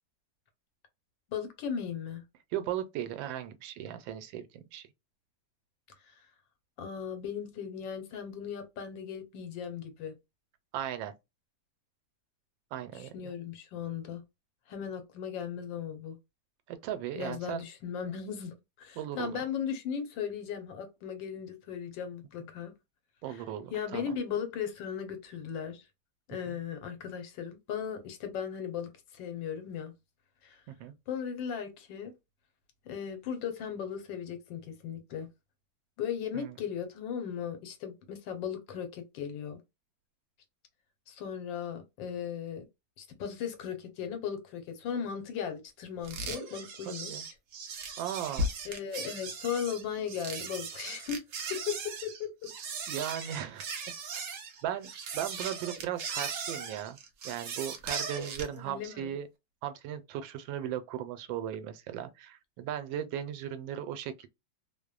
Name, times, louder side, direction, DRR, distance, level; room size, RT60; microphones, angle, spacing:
voice 1, 1.3-2.2 6.8-10.1 12.9-14.2 14.7-16.2 17.2-22.7 23.3-23.4 23.7-25.8 26.3-29.9 30.4-30.6 31.1-32.1 32.8-35.3 36.0-39.6 41.1-42.7 43.0-47.3 48.6-51.2 51.5-52.3 58.6-59.2, left 8 dB, 80° left, 1.4 m, -37 dB
voice 2, 2.5-4.9 10.7-11.1 12.7-13.3 16.7-17.6 19.0-19.4 22.4-22.5 23.2-24.1 26.5-26.6 30.7-30.9 36.3-36.6 46.9-47.2 48.0-48.5 52.9-53.7 54.6-57.0 57.2-59.3 59.6-64.3, right 10 dB, 85° right, 1.3 m, -37 dB
sound 1, 46.0-58.6, right 3 dB, 70° right, 0.7 m, -38 dB
3.1 x 2.0 x 2.3 m
omnidirectional pair, 2.0 m